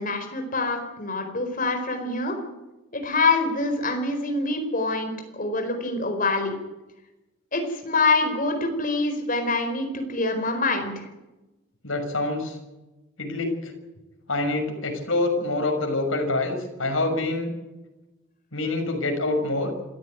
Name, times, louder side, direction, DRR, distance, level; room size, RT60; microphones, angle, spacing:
voice 1, 0.0-2.4 2.9-6.6 7.5-11.0, left 3 dB, 40° left, 5 dB, 4.5 m, -25 dB
voice 2, 11.8-12.6 13.2-13.7 14.3-17.5 18.5-19.7, left 2 dB, 75° left, 3 dB, 6.3 m, -26 dB
26.5 x 14.5 x 9.3 m, 1.1 s
head